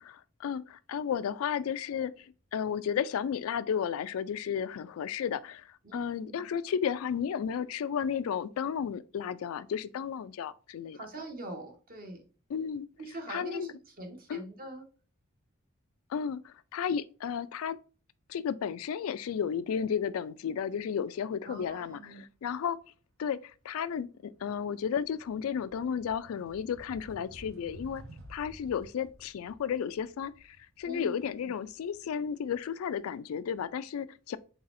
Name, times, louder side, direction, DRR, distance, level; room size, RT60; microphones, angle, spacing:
voice 1, 0.0-11.0 12.5-12.9 13.3-13.7 14.3-14.4 16.1-17.8 18.3-22.8 23.2-28.0 28.3-34.4, left 7 dB, 80° left, 0.3 m, -33 dB
voice 2, 5.8-6.5 10.9-12.2 13.0-14.9 21.5-22.3 30.8-31.5, right 1 dB, 45° right, 1.0 m, -43 dB
sound 1, 23.5-23.7 24.1-32.9, right 1 dB, 70° right, 1.0 m, -53 dB
4.0 x 3.9 x 2.5 m
head